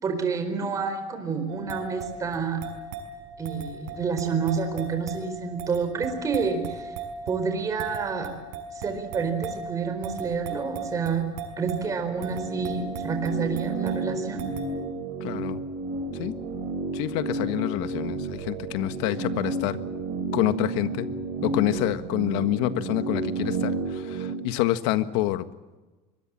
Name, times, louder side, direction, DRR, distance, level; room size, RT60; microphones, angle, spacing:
voice 1, 0.0-2.6 3.4-6.9 7.3-8.3 8.7-11.2 11.6-14.5, right 5 dB, 25° right, 5 dB, 4.4 m, -29 dB
sound 1, 1.5-14.8, right 4 dB, 85° right, 6.1 m, -38 dB
sound 2, 11.8-24.3, right 3 dB, 55° right, 3.6 m, -32 dB
voice 2, 15.2-15.6 16.1-16.3 16.9-19.8 20.3-21.1 21.4-25.5, left 15 dB, 80° left, 11 dB, 1.6 m, -27 dB
25.0 x 22.0 x 7.5 m, 1.2 s
cardioid pair, 155°, 14 cm